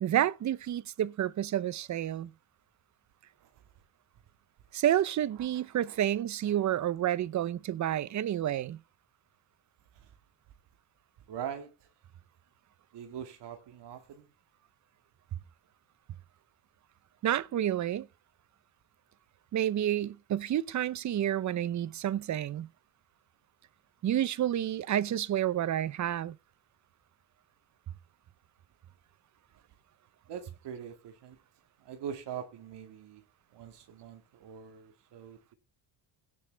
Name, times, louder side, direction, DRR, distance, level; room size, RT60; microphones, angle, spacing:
voice 1, 0.0-2.3 4.7-8.8 17.2-18.1 19.5-22.7 24.0-26.4, right 11 dB, 40° right, 0.6 m, -29 dB
voice 2, 5.4-6.0 10.0-10.1 11.3-11.7 12.9-14.3 30.3-31.4 31.8-33.2 33.5-35.5, right 8 dB, 65° right, 2.0 m, -43 dB
17.0 x 6.7 x 3.4 m
cardioid pair, 125°, 45 cm